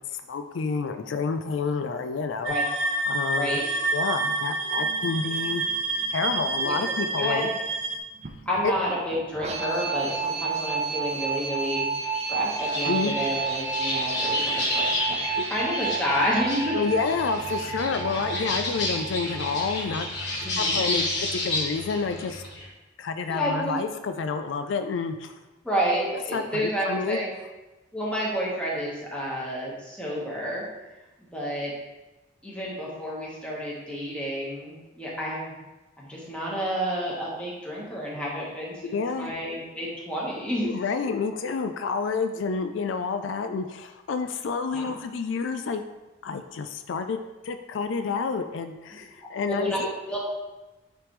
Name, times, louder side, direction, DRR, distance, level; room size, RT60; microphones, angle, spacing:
voice 1, 0.1-2.5 3.1-3.6 3.9-5.6 6.1-7.5 8.6-8.7 12.9-13.2 15.4-15.5 16.7-22.4 23.0-25.3 26.3-27.2 38.8-39.3 40.6-45.8 46.2-49.9, left 5 dB, 80° left, 8 dB, 0.4 m, -29 dB
sound 1, 2.4-8.0, right 3 dB, 80° right, 0.6 m, -28 dB
sound 2, 4.8-22.6, right 4 dB, 35° right, 0.5 m, -32 dB
voice 2, 6.6-7.5 8.4-15.2 15.4-16.8 20.4-20.8 23.3-23.8 25.6-27.3 27.9-30.6 31.2-31.7 32.4-35.6 36.0-40.7 44.7-44.9 49.5-50.4, equal, 5° left, -5 dB, 1.4 m, -30 dB
sound 3, 12.6-22.7, left 2 dB, 60° left, 1.4 m, -31 dB
9.0 x 3.3 x 3.2 m, 1.1 s
head